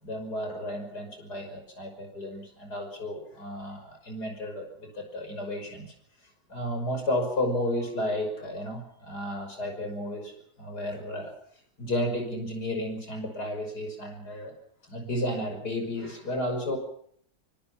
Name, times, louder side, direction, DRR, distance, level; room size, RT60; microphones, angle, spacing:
voice 1, 0.0-5.9 6.5-11.3 11.8-14.5 14.9-16.8, left 1 dB, 85° left, 5 dB, 6.3 m, -32 dB
24.5 x 23.0 x 5.8 m, 0.63 s
omnidirectional pair, 1.7 m